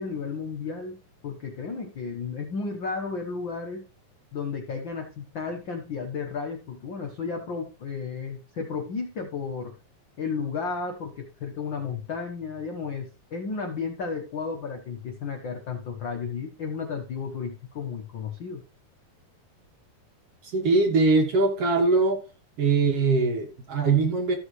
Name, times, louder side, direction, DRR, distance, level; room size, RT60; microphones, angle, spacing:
voice 1, 0.0-3.9 4.3-9.7 10.2-18.6, left 5 dB, 90° left, 2 dB, 1.0 m, -33 dB
voice 2, 20.4-22.2 22.6-24.4, right 3 dB, 55° right, 3 dB, 1.9 m, -22 dB
14.0 x 6.4 x 3.2 m, 0.33 s
omnidirectional pair, 4.1 m